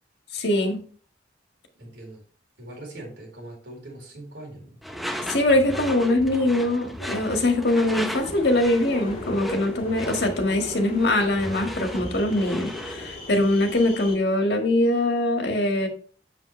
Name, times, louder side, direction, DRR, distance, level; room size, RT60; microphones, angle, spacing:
voice 1, 0.3-0.8 5.3-15.9, left 1 dB, 65° left, 4 dB, 1.7 m, -22 dB
voice 2, 1.8-2.2 2.6-4.8, right 1 dB, 85° right, 0 dB, 4.0 m, -41 dB
Door / Screech, 4.8-13.1, equal, ahead, 0.6 m, -36 dB
sound 1, 8.0-14.2, left 2 dB, 40° left, 2.1 m, -39 dB
7.6 x 7.3 x 3.2 m, 0.43 s
head